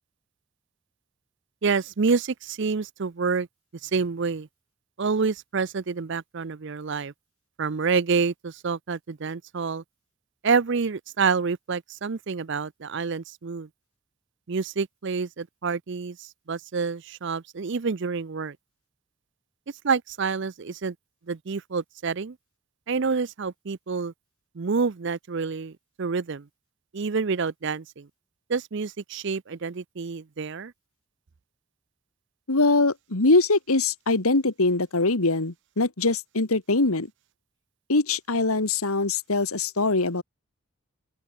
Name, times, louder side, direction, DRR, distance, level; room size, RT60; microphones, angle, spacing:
voice 1, 1.6-3.5 3.8-4.5 5.0-7.1 7.6-9.8 10.4-13.7 14.5-18.6 19.8-20.9 21.3-22.4 22.9-24.1 24.6-25.7 26.0-26.4 26.9-28.1 28.5-30.7, right 5 dB, 50° right, 0.5 m, -28 dB
voice 2, 32.5-37.1 37.9-40.2, left 3 dB, 75° left, 1.8 m, -23 dB
open air
head